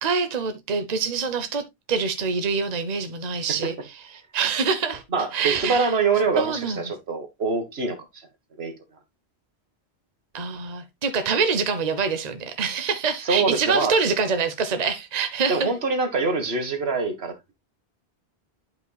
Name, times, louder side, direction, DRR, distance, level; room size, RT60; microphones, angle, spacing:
voice 1, 0.0-1.6 1.9-3.7 4.3-5.0 5.3-5.9 6.4-6.9 10.3-15.7, right 5 dB, 45° right, 0.9 m, -25 dB
voice 2, 5.1-8.0 8.6-8.7 13.2-13.9 15.5-17.3, right 4 dB, 75° right, 1.8 m, -24 dB
11.5 x 5.1 x 2.3 m
omnidirectional pair, 1.1 m